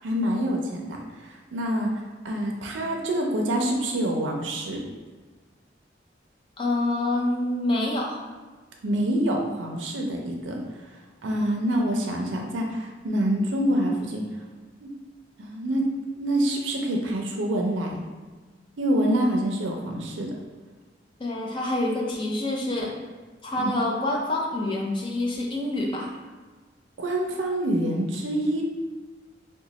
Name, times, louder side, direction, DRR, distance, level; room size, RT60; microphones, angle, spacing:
voice 1, 0.0-1.9 2.2-4.8 8.8-10.6 11.2-14.2 14.8-14.9 15.4-15.9 16.1-18.0 18.8-20.3 23.6-23.7 27.0-28.6, right 1 dB, 85° right, 1 dB, 0.5 m, -26 dB
voice 2, 6.6-8.3 21.2-22.9 23.4-26.1, left 1 dB, 25° left, -1 dB, 0.5 m, -27 dB
2.9 x 2.2 x 3.9 m, 1.4 s
head